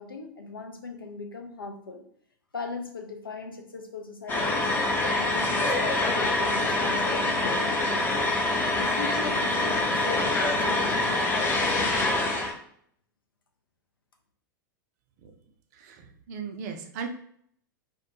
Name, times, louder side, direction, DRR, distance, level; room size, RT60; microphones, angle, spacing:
voice 1, 0.0-2.0 2.5-4.7 5.0-8.3 8.8-12.3, left 4 dB, 90° left, 2 dB, 0.4 m, -39 dB
sound 1, 4.3-12.5, left 2 dB, 20° left, 0.5 m, -25 dB
voice 2, 15.7-17.1, right 6 dB, 50° right, 5 dB, 0.4 m, -37 dB
2.2 x 2.1 x 2.8 m, 0.65 s
figure-of-eight pair, 95°, 11 cm